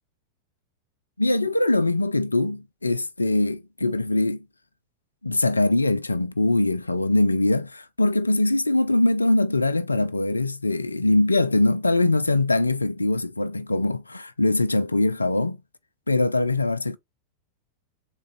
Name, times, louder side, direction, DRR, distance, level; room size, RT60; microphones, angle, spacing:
voice 1, 1.2-4.4 5.2-15.6 16.1-17.0, left 2 dB, 80° left, 0.3 m, -22 dB
3.7 x 2.6 x 4.4 m
figure-of-eight pair, 90°, 0 cm